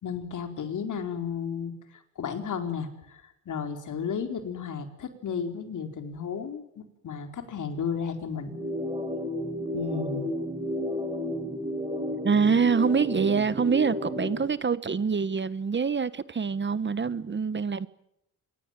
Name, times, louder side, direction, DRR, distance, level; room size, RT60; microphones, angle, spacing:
voice 1, 0.0-8.6 9.7-10.3, left 6 dB, 60° left, 4.6 m, -33 dB
sound 1, 8.5-14.5, equal, 15° right, 6.7 m, -32 dB
voice 2, 12.2-17.9, right 5 dB, 35° right, 1.3 m, -25 dB
26.0 x 23.0 x 9.1 m
cardioid pair, 85°, 34 cm